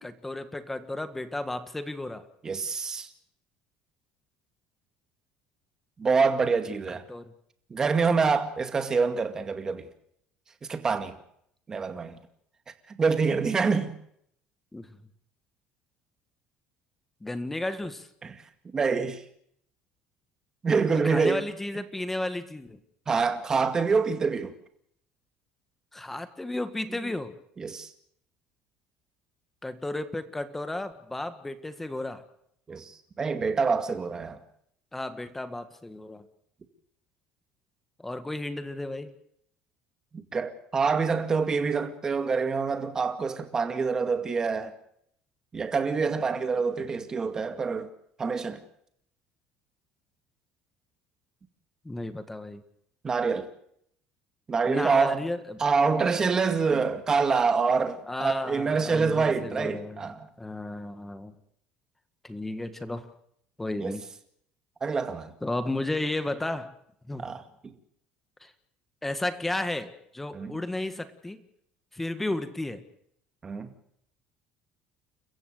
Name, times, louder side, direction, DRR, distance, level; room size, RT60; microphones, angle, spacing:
voice 1, 0.0-2.3 7.1-7.3 14.7-14.9 17.2-18.1 21.0-22.8 25.9-27.3 29.6-32.2 34.9-36.2 38.0-39.1 51.8-52.6 54.7-55.6 58.1-61.3 62.2-63.1 63.6-64.0 65.4-66.7 67.1-67.3 68.4-68.5 69.0-71.4 71.9-72.8, left 2 dB, 10° left, 1.6 m, -33 dB
voice 2, 2.4-3.1 6.0-7.0 7.7-9.9 10.7-11.2 11.7-12.2 12.9-13.9 18.2-18.3 18.7-19.2 20.6-21.4 23.1-24.5 27.6-27.9 32.7-34.4 40.3-44.7 45.5-47.9 48.2-48.6 53.0-53.5 54.5-55.2 55.6-60.3 63.8-64.0 64.8-65.3 67.2-67.4 70.3-70.6 73.4-73.7, right 5 dB, 25° right, 2.1 m, -26 dB
29.5 x 15.0 x 6.7 m
cardioid pair, 140°, 3 cm